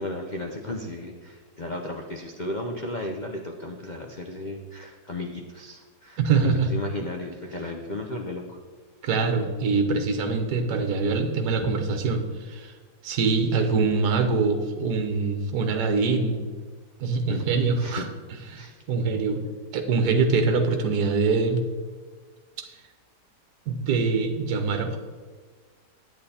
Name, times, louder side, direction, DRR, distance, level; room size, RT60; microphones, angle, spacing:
voice 1, 0.0-8.6 11.6-11.8 17.3-17.5 17.8-18.1 18.6-18.8, left 1 dB, 85° left, 2 dB, 0.4 m, -34 dB
voice 2, 6.2-6.7 9.0-12.7 13.0-16.4 17.0-18.0 18.5-19.4 19.7-21.6 22.6-22.7 23.7-25.0, right 4 dB, 60° right, 5 dB, 1.5 m, -24 dB
9.5 x 8.7 x 4.2 m, 1.5 s
omnidirectional pair, 2.0 m